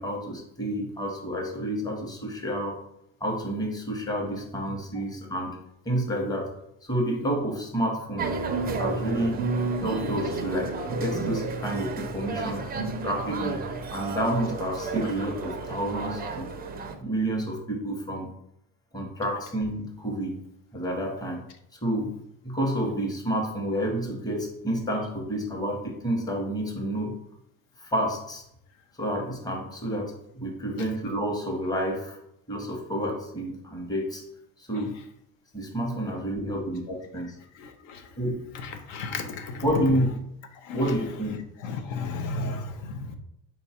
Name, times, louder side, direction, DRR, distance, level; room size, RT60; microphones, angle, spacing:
voice 1, 0.0-2.8 3.2-5.6 5.8-6.5 6.8-8.4 8.8-9.4 9.8-12.7 13.0-16.5 17.0-18.3 18.9-20.4 20.7-21.4 21.7-22.2 22.4-27.2 27.8-28.4 28.9-32.2 32.5-34.2 34.6-35.0 35.5-37.4 38.2-38.4 39.6-40.1 40.7-41.4, equal, 10° left, 0 dB, 0.8 m, -29 dB
sound 1, 8.2-16.9, right 3 dB, 20° right, 0.4 m, -31 dB
voice 2, 37.6-38.0 38.6-39.6 40.6-40.8 41.6-43.2, left 3 dB, 70° left, 6 dB, 0.7 m, -34 dB
4.3 x 2.3 x 4.2 m, 0.77 s
cardioid pair, 115°, 46 cm